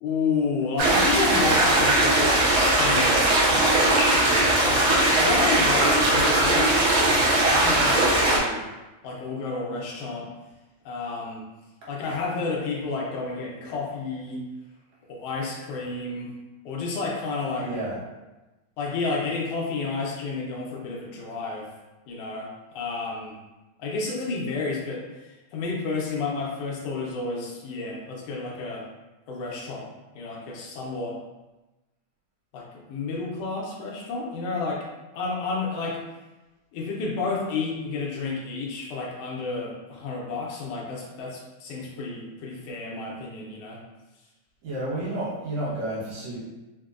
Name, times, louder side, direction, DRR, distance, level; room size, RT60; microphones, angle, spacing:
voice 1, 0.0-3.3 4.1-8.6 9.0-10.3 10.8-11.5 11.9-14.4 15.1-16.3 16.6-17.7 18.8-21.7 22.1-23.4 23.8-28.9 29.3-29.9 30.1-31.2 32.5-34.9 35.1-36.0 36.7-43.8, left 4 dB, 75° left, -2 dB, 1.5 m, -31 dB
sound 1, 0.8-8.4, right 1 dB, 90° right, 1.1 m, -20 dB
voice 2, 17.6-18.0 44.6-46.4, right 1 dB, 65° right, -7 dB, 2.2 m, -31 dB
4.6 x 2.1 x 2.4 m, 1.1 s
omnidirectional pair, 3.4 m